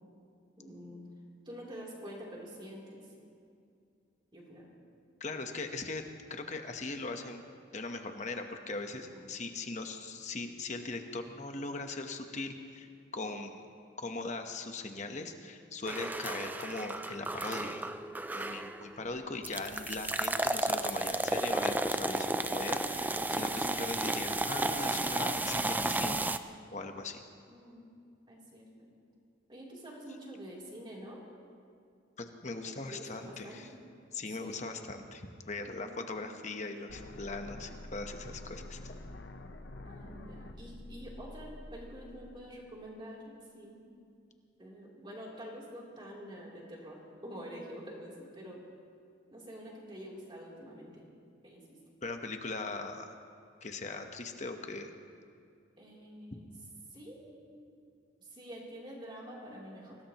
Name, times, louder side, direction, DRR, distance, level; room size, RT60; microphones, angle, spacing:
voice 1, 0.6-1.0 1.4-3.1 4.3-4.7 9.1-9.3 27.5-27.9 28.3-28.9 29.5-31.2 32.7-33.8 34.4-34.7 35.7-36.9 39.8-43.9 44.6-48.6 49.3-51.0 51.4-51.8 55.8-56.5 56.9-57.7 58.2-60.0, equal, 25° right, -4 dB, 3.3 m, -47 dB
voice 2, 5.2-6.0 6.3-7.4 7.7-12.9 13.1-13.6 14.0-17.9 18.3-26.2 26.7-27.2 32.2-33.7 34.1-38.9 52.0-53.1 53.6-54.9, left 3 dB, 35° left, 5 dB, 1.1 m, -40 dB
sound 1, 15.9-19.0 19.4-26.4, right 2 dB, 10° right, 0.3 m, -33 dB
sound 2, 36.9-42.9, left 1 dB, 55° left, 0.9 m, -47 dB
24.5 x 18.5 x 3.0 m, 2.4 s
head